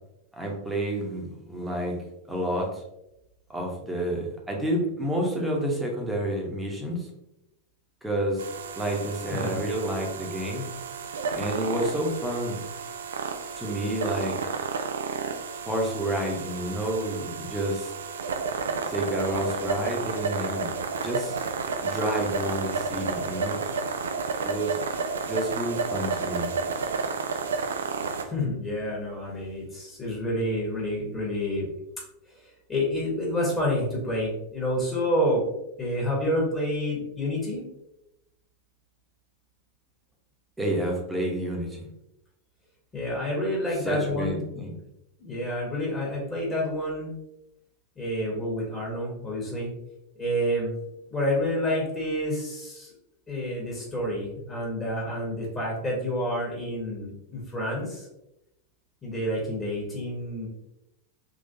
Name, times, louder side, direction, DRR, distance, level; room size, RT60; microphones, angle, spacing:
voice 1, 0.4-2.0 2.3-2.8 3.5-7.1 8.0-8.5 8.8-10.7 11.3-12.6 13.6-14.4 15.7-17.9 18.9-20.7 21.0-21.4 21.8-23.6 24.4-24.8 25.3-26.5 40.6-41.9 43.7-44.7, right 1 dB, 5° right, -2 dB, 0.9 m, -29 dB
sound 1, 8.4-28.2, right 4 dB, 65° right, 0.3 m, -31 dB
voice 2, 9.3-9.6 28.2-31.7 32.3-35.4 35.8-37.6 42.9-44.4 45.2-47.1 48.0-49.7 50.2-50.7 51.1-52.9 53.3-58.1 59.0-60.5, left 1 dB, 20° left, -5 dB, 1.2 m, -29 dB
3.7 x 3.0 x 2.7 m, 0.87 s
figure-of-eight pair, 90°, 0 cm